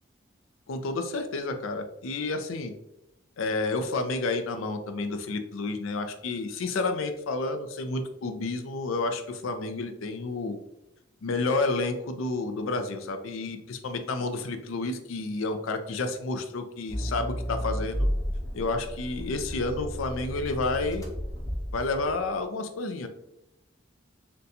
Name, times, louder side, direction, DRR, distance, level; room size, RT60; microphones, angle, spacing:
voice 1, 0.7-2.7 3.4-10.6 11.2-18.1 18.5-21.0 21.7-23.1, left 3 dB, 90° left, 8 dB, 0.4 m, -30 dB
Accelerating revving vroom, 16.9-22.3, equal, 15° left, 0.5 m, -33 dB
3.9 x 2.2 x 2.6 m, 0.85 s
head